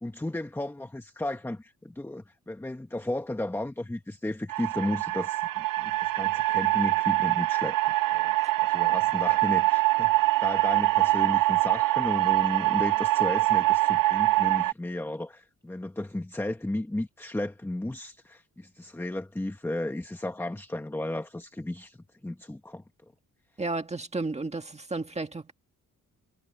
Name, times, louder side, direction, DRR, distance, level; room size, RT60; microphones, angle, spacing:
voice 1, 0.0-8.3 8.6-22.0 22.2-22.8, left 1 dB, 5° left, 1.3 m, -34 dB
sound 1, 4.5-14.7, right 18 dB, 80° right, 0.5 m, -24 dB
voice 2, 23.6-25.5, right 3 dB, 20° right, 1.9 m, -33 dB
wide cardioid pair, 140°, 32 cm